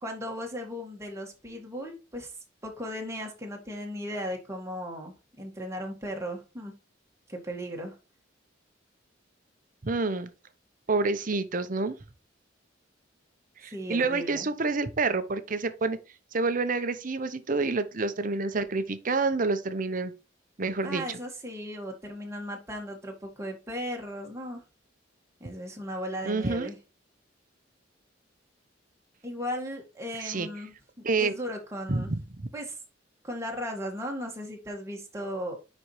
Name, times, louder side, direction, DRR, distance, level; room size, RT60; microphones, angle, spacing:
voice 1, 0.0-2.3 2.6-6.7 7.3-8.0 13.7-14.5 20.8-24.6 25.4-26.8 29.2-32.1 32.5-32.8 33.2-35.6, equal, 15° right, 1.8 m, -36 dB
voice 2, 9.8-10.3 10.9-11.9 13.6-16.0 16.3-20.1 20.6-21.2 26.2-26.7 30.2-30.5 31.0-31.4 31.9-32.5, right 3 dB, 45° right, 0.8 m, -28 dB
9.8 x 4.3 x 3.2 m
head